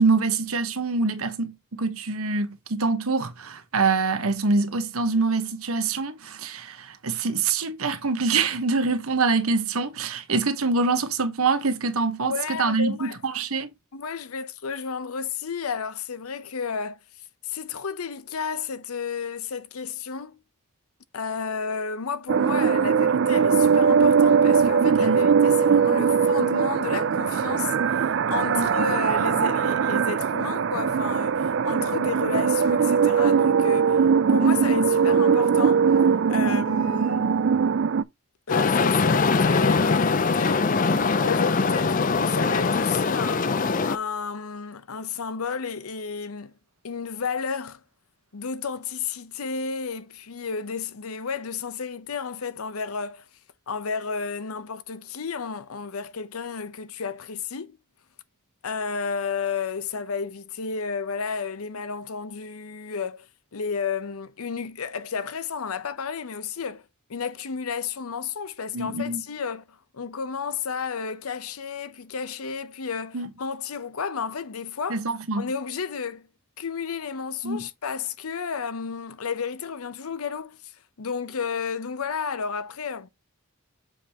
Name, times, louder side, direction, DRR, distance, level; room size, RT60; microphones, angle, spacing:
voice 1, 0.0-13.7 24.9-25.2 28.5-28.7 36.4-36.6 68.7-69.2 73.1-73.3 74.9-75.5 77.4-77.6, right 4 dB, 80° right, 1.2 m, -25 dB
voice 2, 12.2-13.2 13.9-17.0 17.4-20.4 21.1-34.0 34.3-35.9 36.3-37.4 38.5-40.7 41.2-43.5 43.9-46.5 46.8-47.8 48.3-53.2 53.7-57.8 58.6-63.3 63.5-66.8 67.1-75.0 75.4-76.3 76.6-80.7 81.0-83.1, left 5 dB, 85° left, 0.7 m, -32 dB
sound 1, 22.3-38.0, right 6 dB, 55° right, 0.4 m, -21 dB
sound 2, 38.5-44.0, left 4 dB, 35° left, 0.5 m, -22 dB
7.1 x 5.3 x 2.9 m
head